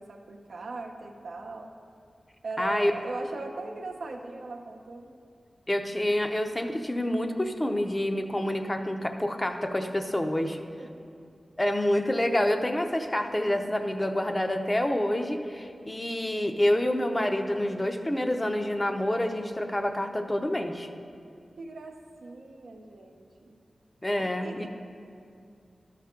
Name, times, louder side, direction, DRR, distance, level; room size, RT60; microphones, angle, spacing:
voice 1, 0.0-1.7 2.4-5.2 10.4-10.9 21.6-23.6 24.2-24.7, right 3 dB, 90° right, 2 dB, 0.7 m, -39 dB
voice 2, 2.6-2.9 5.7-10.6 11.6-20.9 24.0-24.7, left 1 dB, 25° left, 5 dB, 0.7 m, -27 dB
12.5 x 5.8 x 3.7 m, 2.4 s
cardioid pair, 55°, 0 cm